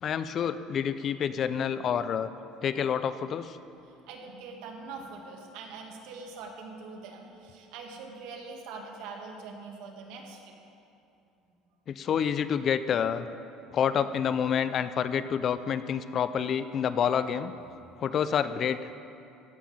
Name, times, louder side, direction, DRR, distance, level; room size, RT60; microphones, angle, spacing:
voice 1, 0.0-2.3 2.6-3.6 11.9-13.3 13.7-17.5 18.0-18.9, left 8 dB, 40° left, 13 dB, 0.4 m, -28 dB
voice 2, 4.1-10.5 17.9-18.1, right 4 dB, 75° right, 1 dB, 2.0 m, -43 dB
15.0 x 5.8 x 8.6 m, 2.7 s
cardioid pair, 135°, 0 cm